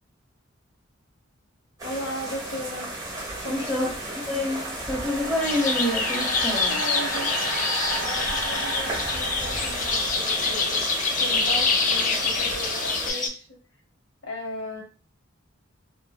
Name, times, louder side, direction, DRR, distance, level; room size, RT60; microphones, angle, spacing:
voice 1, 1.8-2.9 3.4-4.0 6.7-7.3 8.0-13.5 14.2-14.8, left 1 dB, 65° left, -2 dB, 1.2 m, -36 dB
sound 1, 1.8-13.1, right 1 dB, 20° right, 1.1 m, -34 dB
voice 2, 3.4-3.9 4.3-6.7, left 1 dB, 5° left, -6 dB, 0.9 m, -27 dB
sound 2, 4.3-10.5, right 2 dB, 60° right, 0.6 m, -34 dB
sound 3, 5.4-13.3, left 4 dB, 40° left, 0.4 m, -26 dB
2.6 x 2.5 x 2.3 m, 0.37 s
head